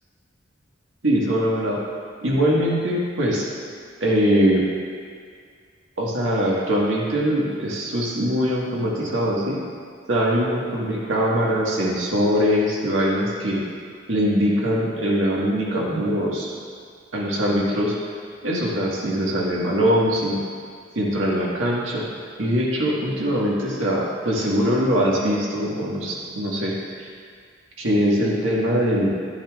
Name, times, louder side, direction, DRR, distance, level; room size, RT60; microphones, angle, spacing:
voice 1, 1.0-1.8 2.2-3.5 4.0-4.6 6.0-9.6 10.1-13.6 14.1-16.5 17.1-17.9 18.4-20.4 20.9-22.0 22.4-27.1 27.8-29.1, equal, 80° right, -4 dB, 1.6 m, -22 dB
11.0 x 9.7 x 2.4 m, 2.1 s
head